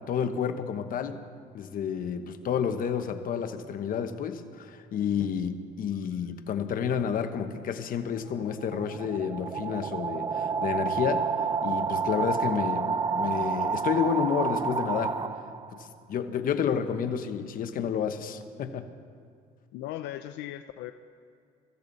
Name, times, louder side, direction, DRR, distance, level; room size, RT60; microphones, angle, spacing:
voice 1, 0.1-1.2 1.5-15.2 15.7-18.9, left 7 dB, 55° left, 8 dB, 1.1 m, -30 dB
sound 1, 8.1-15.9, right 5 dB, 25° right, 0.5 m, -30 dB
voice 2, 19.7-20.9, left 13 dB, 85° left, 10 dB, 0.5 m, -37 dB
23.0 x 14.0 x 4.1 m, 2.4 s
cardioid pair, 110°, 17 cm